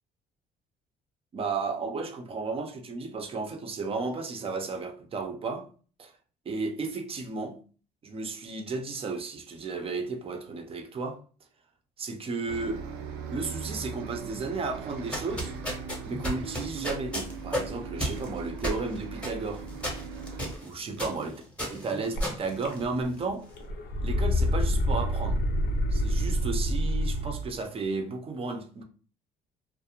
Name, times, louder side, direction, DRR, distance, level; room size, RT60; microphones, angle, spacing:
voice 1, 1.3-5.7 6.0-6.1 6.5-7.6 8.0-11.2 12.0-12.8 13.3-15.5 16.0-17.2 17.4-19.7 20.6-21.3 21.7-23.5 24.0-25.4 25.9-28.8, right 4 dB, 35° right, 0.5 m, -33 dB
Bus, 12.5-20.6, right 5 dB, 85° right, 0.4 m, -39 dB
sound 1, 14.9-23.3, equal, 5° left, 0.8 m, -35 dB
sound 2, 22.2-22.3 22.6-23.2 23.5-27.5, equal, 75° left, 0.6 m, -27 dB
2.4 x 2.0 x 2.8 m
cardioid pair, 110°, 17 cm